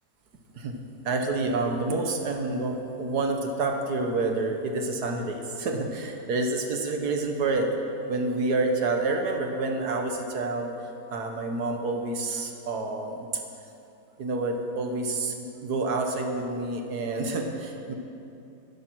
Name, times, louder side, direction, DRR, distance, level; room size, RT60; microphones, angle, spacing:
voice 1, 1.0-7.7 8.1-10.7 11.1-13.4 14.2-17.9, right 3 dB, 70° right, 3 dB, 1.6 m, -28 dB
12.5 x 11.0 x 6.0 m, 2.8 s
omnidirectional pair, 1.8 m